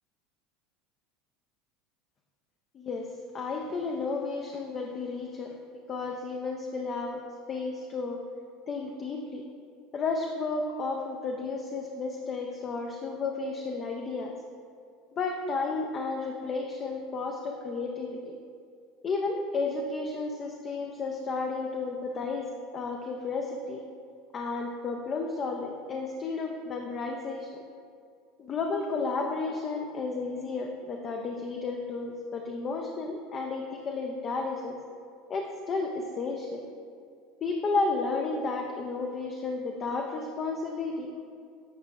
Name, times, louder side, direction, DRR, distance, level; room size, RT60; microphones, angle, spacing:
voice 1, 2.7-5.6 5.9-7.2 7.5-8.2 8.7-9.4 9.9-14.3 15.1-18.4 19.0-23.8 24.3-27.5 28.4-34.8 35.3-36.7 37.4-41.3, left 3 dB, 35° left, 2 dB, 0.4 m, -32 dB
8.0 x 5.4 x 2.3 m, 2.3 s
figure-of-eight pair, 70°, 0 cm